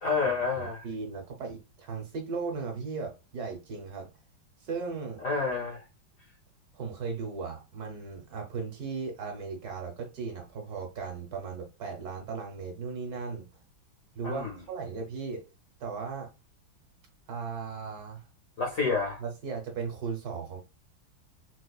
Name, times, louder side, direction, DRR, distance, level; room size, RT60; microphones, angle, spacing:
voice 1, 0.0-0.8 5.2-5.8 14.2-14.5 18.6-19.2, left 4 dB, 65° left, 0.8 m, -29 dB
voice 2, 0.6-4.1 4.6-5.2 6.7-13.5 14.1-15.4 15.8-16.3 17.3-18.2 19.2-20.6, right 5 dB, 60° right, 1.2 m, -37 dB
4.3 x 2.4 x 2.3 m
omnidirectional pair, 2.1 m